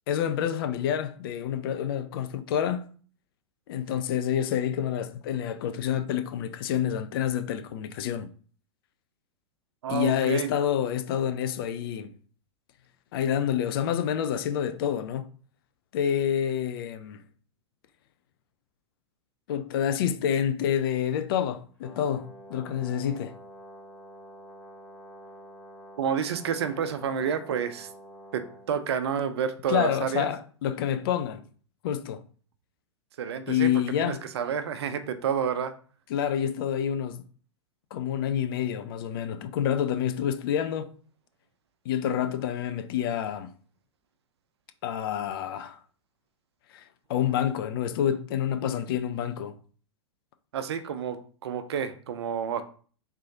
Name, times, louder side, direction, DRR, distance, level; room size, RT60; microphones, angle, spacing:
voice 1, 0.1-2.9 3.7-8.3 9.9-12.1 13.1-15.3 15.9-17.2 19.5-23.4 29.7-31.4 31.8-32.2 33.5-34.2 36.1-37.2 37.9-40.9 41.9-43.5 44.8-45.8 46.7-46.8 47.1-49.5, left 9 dB, 50° left, 0.4 m, -28 dB
voice 2, 9.8-10.5 26.0-27.9 28.3-30.3 33.2-35.7 50.5-52.6, right 7 dB, 60° right, 0.5 m, -29 dB
Brass instrument, 21.8-28.8, right 1 dB, 10° left, 1.1 m, -48 dB
3.7 x 3.1 x 2.7 m
figure-of-eight pair, 95°, 15 cm